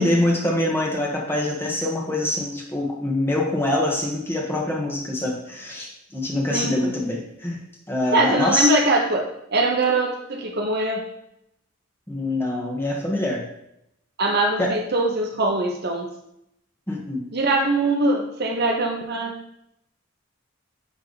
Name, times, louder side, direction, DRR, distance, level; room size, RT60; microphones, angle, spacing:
voice 1, 0.0-7.6 7.9-8.7 12.1-13.4 14.6-14.7 16.9-17.3, left 1 dB, 10° left, -2 dB, 1.6 m, -24 dB
voice 2, 6.5-6.9 8.1-9.3 9.5-11.0 14.2-16.1 17.3-19.4, right 2 dB, 55° right, 2 dB, 1.0 m, -22 dB
10.0 x 3.6 x 4.1 m, 0.80 s
head